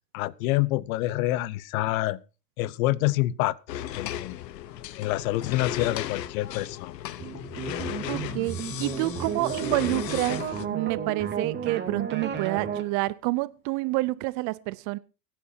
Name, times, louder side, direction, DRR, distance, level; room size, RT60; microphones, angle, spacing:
voice 1, 0.1-2.2 2.6-4.4 5.0-7.0, left 17 dB, 55° left, 0.9 m, -27 dB
sound 1, 3.7-10.6, left 12 dB, 90° left, 1.0 m, -35 dB
sound 2, 7.2-12.8, right 6 dB, 20° right, 2.3 m, -33 dB
voice 2, 8.1-15.0, right 21 dB, 40° right, 0.5 m, -28 dB
22.5 x 10.0 x 2.8 m
supercardioid pair, 130°, 48 cm